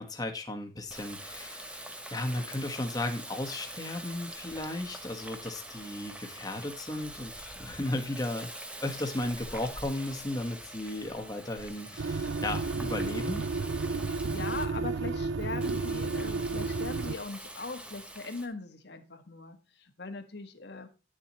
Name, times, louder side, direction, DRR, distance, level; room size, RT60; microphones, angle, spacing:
voice 1, 0.0-8.5 8.8-13.4, left 1 dB, 20° left, 3 dB, 1.4 m, -35 dB
Water tap faucet, 0.9-14.6 15.6-18.5, right 1 dB, 5° right, 1.0 m, -44 dB
sound 1, 12.0-17.2, right 3 dB, 85° right, 0.6 m, -32 dB
voice 2, 13.8-20.9, left 3 dB, 60° left, 7 dB, 1.5 m, -40 dB
10.5 x 7.2 x 3.1 m, 0.30 s
head